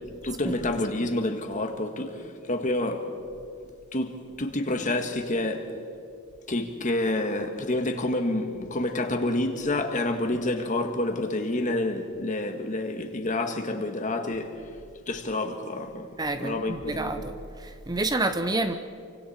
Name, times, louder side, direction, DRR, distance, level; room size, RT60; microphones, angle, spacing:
voice 1, 0.2-3.1 3.9-5.7 6.5-14.6 15.1-16.1 16.4-17.3, left 2 dB, 35° left, 1.7 m, -28 dB
voice 2, 16.2-18.7, right 2 dB, 20° right, 0.7 m, -29 dB
28.5 x 25.0 x 4.4 m
head